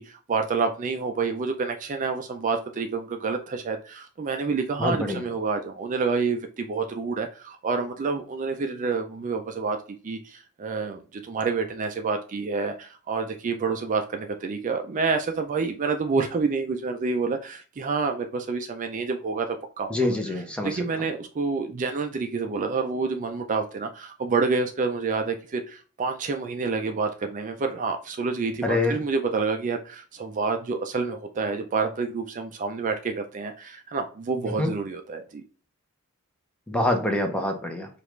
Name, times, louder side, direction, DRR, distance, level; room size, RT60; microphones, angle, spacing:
voice 1, 0.0-35.4, right 4 dB, 35° right, 5 dB, 0.4 m, -28 dB
voice 2, 4.8-5.2 19.9-20.8 28.6-29.0 34.6-34.7 36.7-37.9, left 1 dB, 5° left, 3 dB, 0.7 m, -25 dB
5.0 x 2.5 x 3.1 m, 0.37 s
head